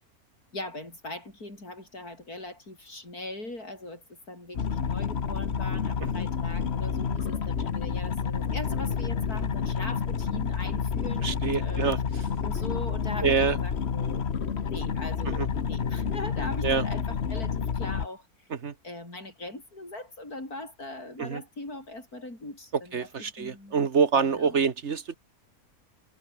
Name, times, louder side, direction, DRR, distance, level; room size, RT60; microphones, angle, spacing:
voice 1, 0.5-11.9 12.2-14.3 14.6-18.3 18.8-23.9 24.1-24.6, left 2 dB, 90° left, 8.5 m, -40 dB
sound 1, 4.5-18.1, left 6 dB, 50° left, 1.4 m, -29 dB
voice 2, 11.2-12.0 13.2-13.6 15.3-15.5 16.6-16.8 18.5-18.7 21.2-21.4 22.7-25.2, right 6 dB, 50° right, 1.5 m, -26 dB
omnidirectional pair, 1.5 m